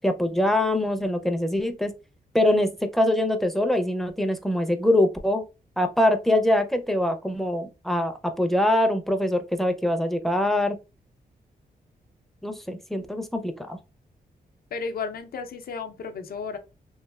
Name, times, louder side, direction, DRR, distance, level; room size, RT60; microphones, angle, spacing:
voice 1, 0.0-1.9 2.3-5.4 5.8-10.8 12.4-13.8, left 1 dB, ahead, 0.4 m, -23 dB
voice 2, 14.7-16.6, left 5 dB, 65° left, 0.5 m, -33 dB
3.1 x 2.4 x 2.3 m
wide cardioid pair, 110°, 16 cm